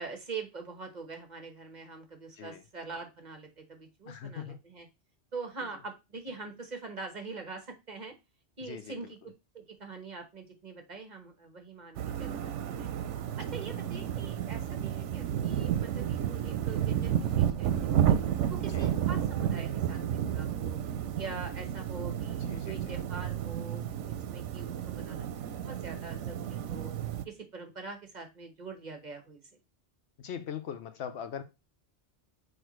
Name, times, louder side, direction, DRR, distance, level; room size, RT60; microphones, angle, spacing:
voice 1, 0.0-4.9 5.3-8.1 8.6-9.2 9.5-12.3 12.6-12.9 13.4-18.2 18.5-20.8 21.2-24.0 24.3-25.3 25.6-26.9 27.2-29.4, right 4 dB, 40° right, 1.2 m, -43 dB
voice 2, 4.1-4.6 8.7-9.1 18.7-18.9 22.5-23.0 30.2-31.4, left 8 dB, 70° left, 0.9 m, -41 dB
sound 1, 12.0-27.2, right 10 dB, 85° right, 0.9 m, -31 dB
6.4 x 4.8 x 3.1 m
omnidirectional pair, 1.2 m